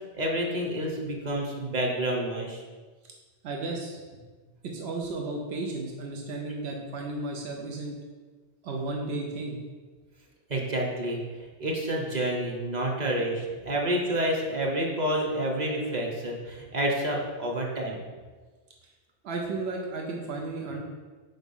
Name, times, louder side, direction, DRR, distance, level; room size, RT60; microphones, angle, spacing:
voice 1, 0.1-2.6 10.5-11.2 11.6-18.0, right 1 dB, 45° right, 0 dB, 1.0 m, -29 dB
voice 2, 3.4-4.0 4.6-7.9 8.6-9.6 18.8-18.9 19.2-20.8, right 2 dB, 85° right, 0 dB, 1.0 m, -33 dB
4.6 x 3.9 x 5.4 m, 1.4 s
omnidirectional pair, 1.0 m